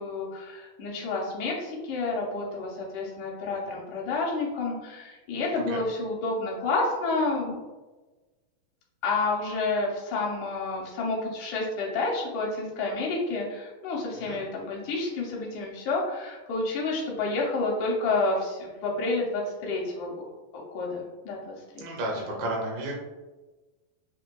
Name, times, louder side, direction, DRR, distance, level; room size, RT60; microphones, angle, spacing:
voice 1, 0.0-7.6 9.0-20.1 20.7-21.8 22.2-22.3, left 3 dB, 75° left, -2 dB, 1.9 m, -29 dB
voice 2, 5.5-5.8 14.3-14.4 21.8-22.9, right 1 dB, 75° right, -2 dB, 2.5 m, -32 dB
5.9 x 2.9 x 2.2 m, 1.2 s
omnidirectional pair, 4.0 m